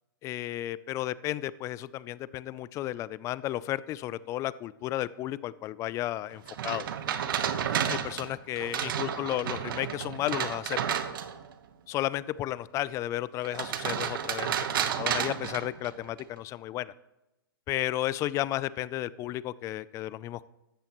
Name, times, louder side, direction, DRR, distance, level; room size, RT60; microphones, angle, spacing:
voice 1, 0.2-6.9 7.9-11.0 11.9-16.9 17.7-20.4, left 14 dB, 25° left, 19 dB, 0.4 m, -33 dB
sound 1, 6.5-11.5 13.4-16.2, right 9 dB, 65° right, 1.2 m, -31 dB
15.5 x 12.5 x 3.0 m, 0.93 s
hypercardioid pair, 135°, 12 cm